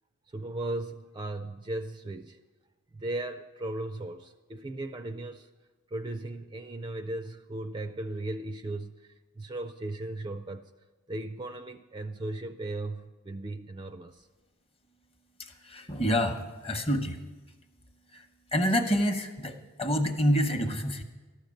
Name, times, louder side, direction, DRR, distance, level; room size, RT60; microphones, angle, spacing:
voice 1, 0.3-2.4 2.9-5.5 5.9-10.7 11.1-14.3, right 2 dB, 20° right, 8 dB, 0.3 m, -37 dB
voice 2, 15.4-17.2 18.1-18.2 18.5-21.0, equal, 25° left, 6 dB, 0.9 m, -27 dB
13.5 x 6.5 x 8.7 m, 1.3 s
head